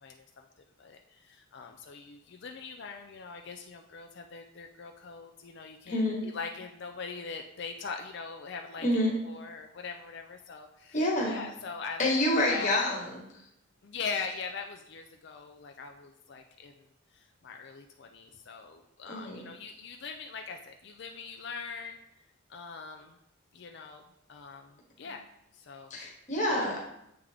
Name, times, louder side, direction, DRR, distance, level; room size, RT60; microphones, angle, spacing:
voice 1, 0.0-0.5 0.8-12.2 12.5-12.8 13.8-16.9 17.1-22.0 22.5-23.2 23.5-24.0 24.3-25.2 25.5-26.1, left 5 dB, 55° left, 4 dB, 0.4 m, -42 dB
voice 2, 5.9-6.3 8.8-9.1 10.9-11.4 12.0-13.2 19.1-19.5 25.9-26.9, left 1 dB, 35° left, -3 dB, 1.4 m, -28 dB
8.0 x 3.6 x 3.4 m, 0.78 s
head